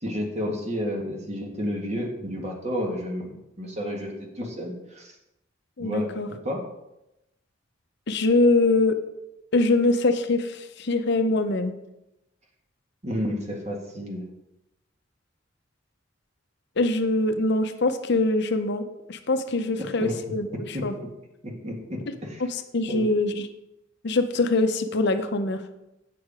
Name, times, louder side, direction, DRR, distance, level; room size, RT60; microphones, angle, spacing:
voice 1, 0.0-3.3 3.6-5.1 5.8-6.6 13.0-14.3 19.8-21.1 21.4-22.5 22.9-23.1, equal, 35° right, 0 dB, 1.7 m, -31 dB
voice 2, 5.8-6.3 8.1-9.0 9.5-11.7 16.8-20.5 20.8-20.9 22.4-23.5 24.0-25.6, left 2 dB, 60° left, 8 dB, 0.7 m, -23 dB
8.5 x 6.5 x 4.8 m, 0.90 s
head